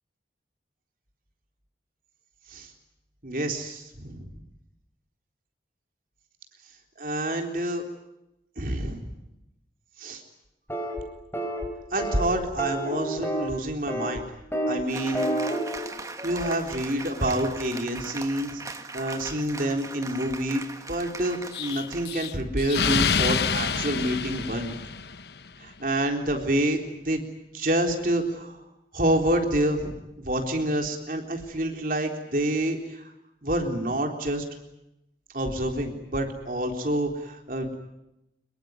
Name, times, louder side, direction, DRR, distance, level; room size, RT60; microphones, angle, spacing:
voice 1, 3.2-4.3 7.0-7.8 8.6-9.1 10.0-10.2 11.9-14.2 14.7-15.3 16.2-18.6 18.9-20.6 20.9-24.8 25.6-27.2 27.5-28.6 28.9-33.0 33.4-34.4 35.3-37.7, right 1 dB, 50° right, 3 dB, 3.8 m, -27 dB
sound 1, 10.7-11.0 11.3-11.7 12.0-12.3 12.6-13.5 13.9-14.2 14.5-14.8 15.1-15.8, right 1 dB, 15° left, 4.5 m, -29 dB
Cheering / Applause, 14.9-22.4, right 3 dB, 20° right, 1.8 m, -39 dB
Explosion, 21.5-25.4, left 6 dB, 70° left, 1.1 m, -27 dB
25.5 x 22.5 x 9.6 m, 0.88 s
head